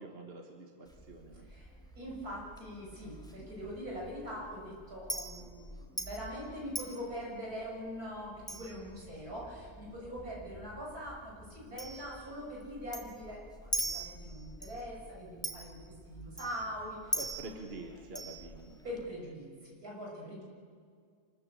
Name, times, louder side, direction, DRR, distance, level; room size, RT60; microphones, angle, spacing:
voice 1, 0.0-1.5 17.2-18.8, right 2 dB, 40° right, 3 dB, 1.8 m, -46 dB
Chink clink, 0.8-19.1, right 1 dB, 5° left, 1.9 m, -44 dB
voice 2, 1.5-17.1 17.4-17.5 18.8-20.4, equal, 70° right, -3 dB, 7.0 m, -43 dB
26.5 x 13.5 x 8.7 m, 2.1 s
omnidirectional pair, 1.6 m